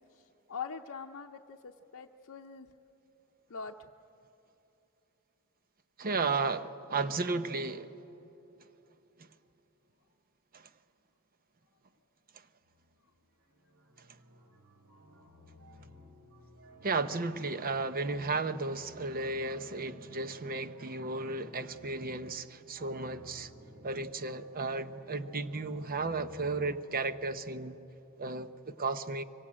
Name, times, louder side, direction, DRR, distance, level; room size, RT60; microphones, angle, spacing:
voice 1, 0.5-2.7 3.5-3.9, left 5 dB, 60° left, 0.7 m, -42 dB
voice 2, 6.0-8.0 9.2-9.3 10.5-10.7 16.8-23.5 23.8-27.8 28.2-29.2, right 3 dB, 40° right, 0.8 m, -34 dB
sound 1, 12.6-13.1 13.4-26.8, equal, 75° right, 4.3 m, -56 dB
24.5 x 24.0 x 8.8 m
head